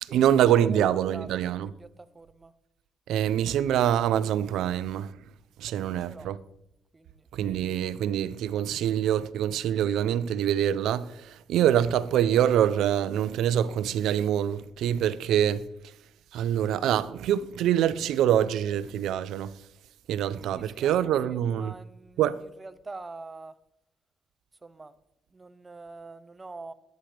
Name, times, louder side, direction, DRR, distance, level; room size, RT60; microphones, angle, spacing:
voice 1, 0.0-1.7 3.1-5.2 5.6-6.4 7.3-15.7 16.3-19.6 20.1-21.8 22.2-22.4, right 10 dB, 80° right, 0.6 m, -25 dB
voice 2, 20.5-20.9 21.6-21.8 22.6-23.5 24.8-24.9 25.6-26.7, right 3 dB, 25° right, 0.8 m, -42 dB
20.5 x 9.2 x 3.4 m
cardioid pair, 90°, 0 cm